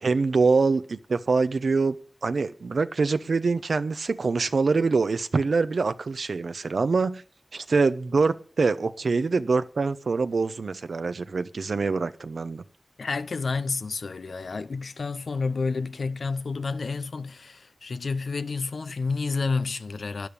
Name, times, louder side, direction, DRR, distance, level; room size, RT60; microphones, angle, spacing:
voice 1, 0.0-2.0 2.2-7.2 7.5-12.6, right 4 dB, 80° right, 0.8 m, -24 dB
voice 2, 13.0-20.3, left 4 dB, 85° left, 0.7 m, -30 dB
12.0 x 10.5 x 7.0 m
cardioid pair, 45°, 0 cm